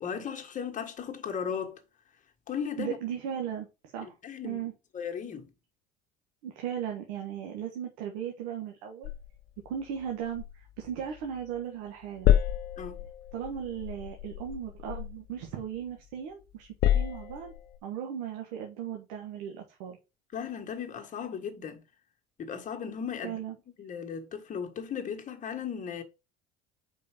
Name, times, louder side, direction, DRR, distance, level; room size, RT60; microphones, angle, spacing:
voice 1, 0.0-1.8 2.5-3.0 4.0-4.7 4.9-5.5 12.8-13.0 20.3-21.8 22.4-23.4 23.8-26.0, left 7 dB, 40° left, 1.6 m, -36 dB
voice 2, 2.8-4.1 4.4-4.7 6.4-9.1 9.6-12.3 13.3-17.5 17.8-20.0 23.2-23.5, right 9 dB, 85° right, 1.4 m, -37 dB
sound 1, 9.0-11.6 11.9-16.1 16.5-17.8, left 11 dB, 55° left, 0.7 m, -30 dB
5.0 x 4.6 x 4.9 m
supercardioid pair, 90°, 19 cm